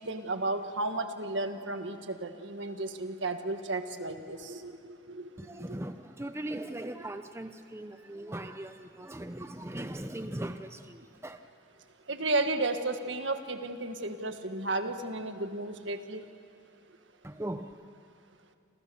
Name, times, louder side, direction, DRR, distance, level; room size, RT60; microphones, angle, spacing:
voice 1, 0.0-5.8 12.1-16.2, right 2 dB, 75° right, 7 dB, 1.8 m, -33 dB
voice 2, 5.4-11.4 17.2-17.8, right 1 dB, 15° right, 8 dB, 0.8 m, -39 dB
29.5 x 27.0 x 7.1 m, 2.5 s
head